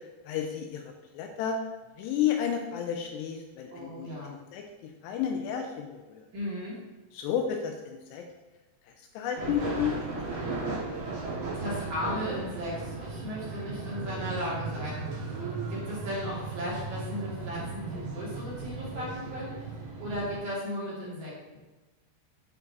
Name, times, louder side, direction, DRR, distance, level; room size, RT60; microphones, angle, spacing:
voice 1, 0.3-1.6 2.0-6.2 7.1-8.2 9.0-10.9, left 8 dB, 85° left, 3 dB, 2.5 m, -32 dB
voice 2, 3.7-4.3 6.3-6.8 11.5-19.7 20.0-21.6, equal, 50° right, -7 dB, 3.0 m, -36 dB
sound 1, 9.3-20.4, right 3 dB, 70° right, 1.1 m, -36 dB
9.4 x 5.3 x 2.8 m, 1.2 s
omnidirectional pair, 5.4 m